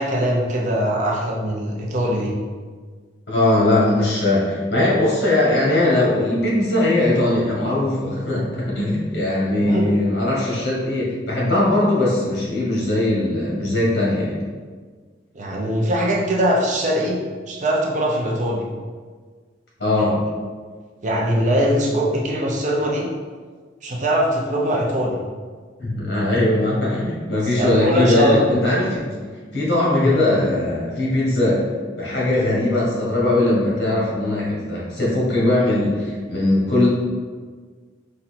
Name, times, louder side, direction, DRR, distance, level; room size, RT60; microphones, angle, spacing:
voice 1, 0.0-2.4 9.6-9.9 15.3-17.2 17.5-18.7 21.0-23.1 23.8-25.2 27.5-28.4 30.0-30.2, equal, 40° right, -1 dB, 0.6 m, -21 dB
voice 2, 3.3-14.4 19.8-20.2 25.8-29.1 29.5-31.6 32.0-36.9, left 1 dB, 65° left, -5 dB, 1.5 m, -20 dB
4.2 x 2.6 x 4.2 m, 1.5 s
head